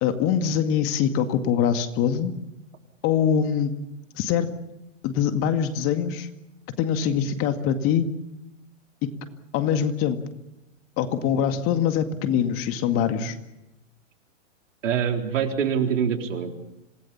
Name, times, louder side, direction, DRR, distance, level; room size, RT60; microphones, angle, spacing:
voice 1, 0.0-2.3 3.0-3.8 4.2-4.5 5.0-6.3 6.8-8.1 9.5-10.2 11.0-13.4, left 8 dB, 35° left, 8 dB, 2.1 m, -23 dB
voice 2, 14.8-16.5, right 7 dB, 75° right, 4 dB, 4.0 m, -24 dB
27.0 x 19.0 x 7.2 m, 0.93 s
hypercardioid pair, 125°, 38 cm